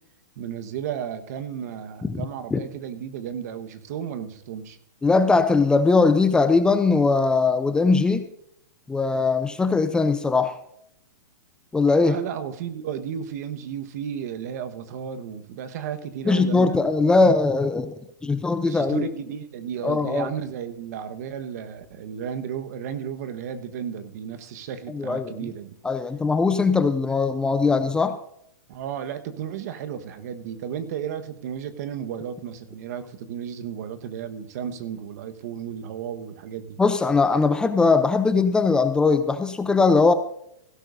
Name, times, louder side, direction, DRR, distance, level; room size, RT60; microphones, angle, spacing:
voice 1, 0.4-4.8 12.1-16.9 18.6-25.8 28.7-36.8, right 8 dB, 55° right, 10 dB, 1.3 m, -33 dB
voice 2, 5.0-8.3 8.9-10.6 11.7-12.2 16.2-17.9 18.2-19.1 19.8-20.3 24.9-25.5 25.8-28.2 36.8-40.1, left 4 dB, 10° left, 10 dB, 0.6 m, -20 dB
16.0 x 12.0 x 2.7 m, 0.76 s
hypercardioid pair, 140°, 10 cm